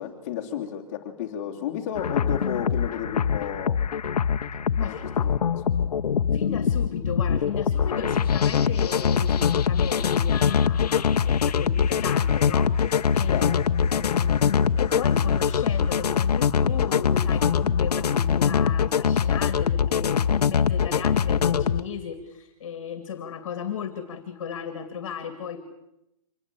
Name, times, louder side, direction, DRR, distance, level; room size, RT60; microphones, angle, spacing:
voice 1, 0.0-3.8 4.8-5.4 13.3-13.5, left 9 dB, 25° left, 1 dB, 3.2 m, -32 dB
sound 1, 1.9-21.8, left 7 dB, 80° left, 1.2 m, -23 dB
voice 2, 4.5-5.1 6.3-13.5 13.8-25.6, left 7 dB, 40° left, 9 dB, 2.7 m, -35 dB
25.5 x 20.0 x 8.6 m, 0.86 s
hypercardioid pair, 175°, 20 cm